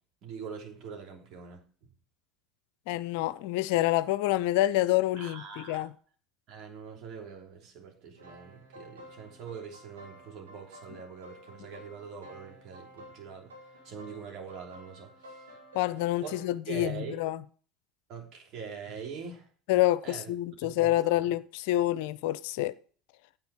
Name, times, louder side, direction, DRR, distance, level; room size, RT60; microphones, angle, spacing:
voice 1, 0.2-1.9 5.2-5.9 6.5-13.5 13.8-15.4 16.2-17.2 18.1-19.5 20.0-20.3 20.6-21.2, right 6 dB, 50° right, 3.2 m, -43 dB
voice 2, 2.9-5.9 15.7-17.4 19.7-22.7, left 15 dB, 60° left, 0.5 m, -27 dB
sound 1, 8.1-16.5, equal, 80° right, 2.9 m, -51 dB
9.3 x 9.1 x 4.8 m
figure-of-eight pair, 70°, 0 cm